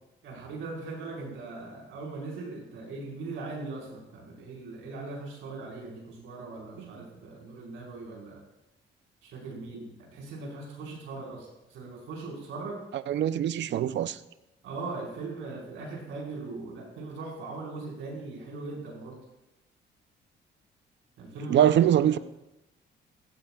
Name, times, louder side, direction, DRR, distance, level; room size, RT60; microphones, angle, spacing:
voice 1, 0.2-8.4 9.2-12.8 14.6-19.2 21.2-21.8 22.0-22.2, right 3 dB, 85° right, -3 dB, 4.8 m, -39 dB
voice 2, 12.9-14.2 21.5-22.2, right 10 dB, 65° right, 14 dB, 0.6 m, -23 dB
16.5 x 15.5 x 2.4 m, 0.95 s
cardioid pair, 90°, 20 cm